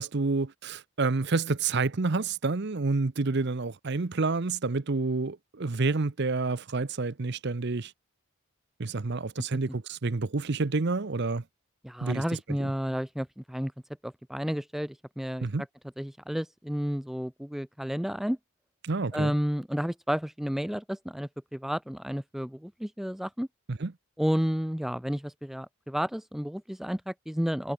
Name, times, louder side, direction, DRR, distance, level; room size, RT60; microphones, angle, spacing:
voice 1, 0.0-7.9 8.8-11.4 12.0-12.2 12.6-12.7 15.4-15.6 18.8-19.3 23.7-23.9, right 3 dB, 50° right, 0.7 m, -29 dB
voice 2, 11.8-13.7 14.0-15.5 16.0-18.4 19.1-23.5 24.2-27.7, equal, ahead, 0.3 m, -31 dB
head